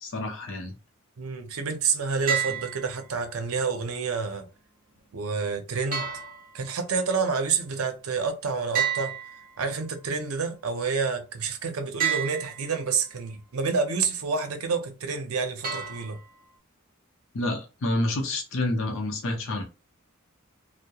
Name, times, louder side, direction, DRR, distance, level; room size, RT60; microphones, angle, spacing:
voice 1, 0.0-0.7 17.3-19.6, left 1 dB, 65° left, 0.6 m, -28 dB
voice 2, 1.2-4.5 5.1-6.1 6.5-9.1 9.6-16.2, right 5 dB, 90° right, 0.6 m, -28 dB
sound 1, 2.3-3.3 5.9-7.0 8.7-10.0 12.0-13.0 15.6-16.6, right 8 dB, 40° right, 0.9 m, -31 dB
2.8 x 2.0 x 2.3 m
head